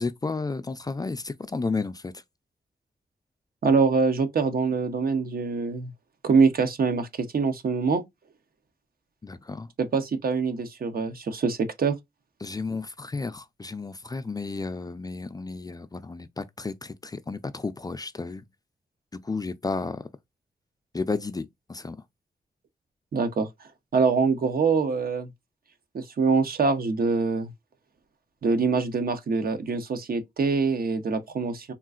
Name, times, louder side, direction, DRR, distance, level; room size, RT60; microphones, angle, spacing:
voice 1, 0.0-2.1 9.2-9.7 12.4-18.4 19.1-20.0 20.9-22.0, left 3 dB, 25° left, 0.4 m, -32 dB
voice 2, 3.6-5.9 6.2-8.0 9.8-12.0 23.1-23.5 23.9-25.3 25.9-27.5 28.4-31.7, right 4 dB, 65° right, 0.7 m, -24 dB
3.7 x 2.4 x 2.3 m
wide cardioid pair, 100°, 16 cm